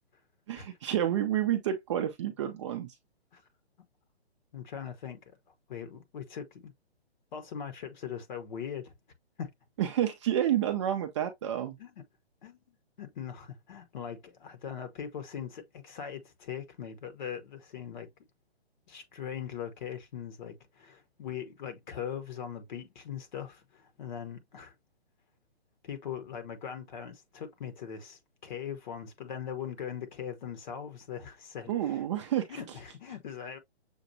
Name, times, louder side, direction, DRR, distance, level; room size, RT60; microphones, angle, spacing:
voice 1, 0.5-2.9 9.8-11.8 31.7-32.6, right 11 dB, 30° right, 0.5 m, -29 dB
voice 2, 4.5-5.4 5.7-6.7 7.3-8.9 9.4-9.5 11.8-12.0 12.4-12.6 13.0-18.1 18.9-24.7 25.8-32.0 32.5-33.6, left 8 dB, 45° left, 1.1 m, -40 dB
7.0 x 2.4 x 2.7 m
figure-of-eight pair, 135°, 32 cm